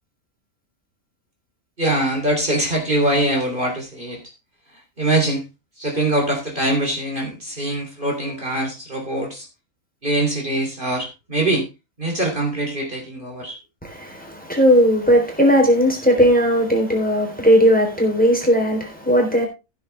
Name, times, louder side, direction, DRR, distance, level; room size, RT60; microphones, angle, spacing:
voice 1, 1.8-4.2 5.0-5.4 5.8-9.5 10.0-11.6 12.0-13.6, right 1 dB, 35° right, 3.4 m, -23 dB
voice 2, 13.8-19.5, equal, 5° left, 3.7 m, -17 dB
15.5 x 7.6 x 3.5 m
omnidirectional pair, 1.5 m